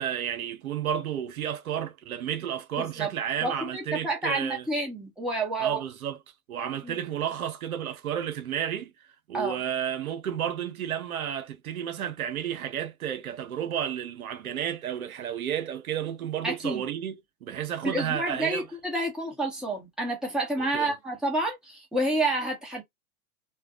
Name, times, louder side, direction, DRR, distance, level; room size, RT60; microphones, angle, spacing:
voice 1, 0.0-4.7 5.6-6.2 6.5-8.9 9.3-18.6 20.6-21.0, right 9 dB, 75° right, 0.8 m, -32 dB
voice 2, 2.8-3.1 3.4-5.8 6.8-7.0 9.3-9.6 16.4-16.9 17.8-22.8, right 2 dB, ahead, 1.1 m, -29 dB
3.3 x 2.3 x 2.5 m
figure-of-eight pair, 105°, 43 cm